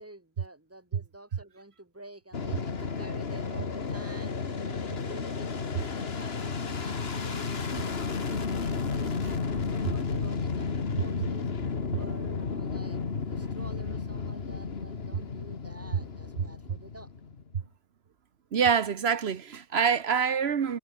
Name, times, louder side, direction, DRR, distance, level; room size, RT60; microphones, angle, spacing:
voice 1, 0.0-11.5 11.9-13.0 13.3-17.1, right 1 dB, 15° right, 2.4 m, -49 dB
Fixed-wing aircraft airplane, 2.3-17.5, left 5 dB, 75° left, 1.9 m, -33 dB
voice 2, 18.5-20.8, right 7 dB, 80° right, 1.3 m, -25 dB
omnidirectional pair, 1.0 m